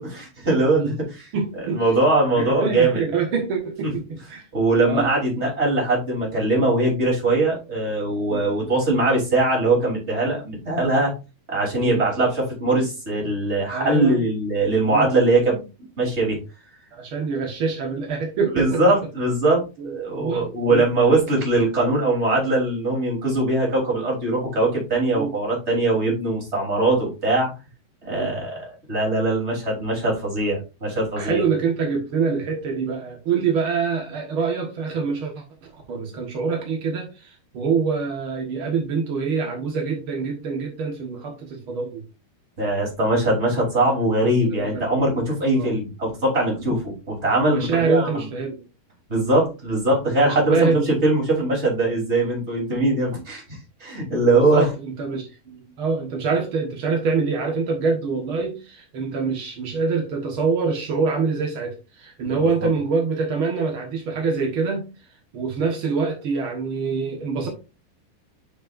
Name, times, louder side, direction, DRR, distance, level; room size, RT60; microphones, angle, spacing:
voice 1, 0.0-1.3 1.7-3.0 4.5-11.1 11.5-15.7 16.0-16.4 18.5-27.5 28.0-31.4 42.6-48.1 49.1-54.7 62.2-62.3 62.6-62.7, right 2 dB, 15° right, -2 dB, 3.1 m, -21 dB
voice 2, 1.3-1.9 2.3-4.4 4.9-5.1 8.3-8.4 11.8-12.0 13.7-14.2 14.9-15.1 16.9-18.8 19.8-19.9 20.2-20.8 25.1-25.3 28.1-28.3 31.2-42.0 44.5-45.1 45.5-45.7 46.6-46.7 47.5-48.6 50.2-51.0 54.3-64.8 65.3-67.5, right 5 dB, 80° right, 1 dB, 1.1 m, -25 dB
9.6 x 5.9 x 2.5 m, 0.29 s
omnidirectional pair, 4.7 m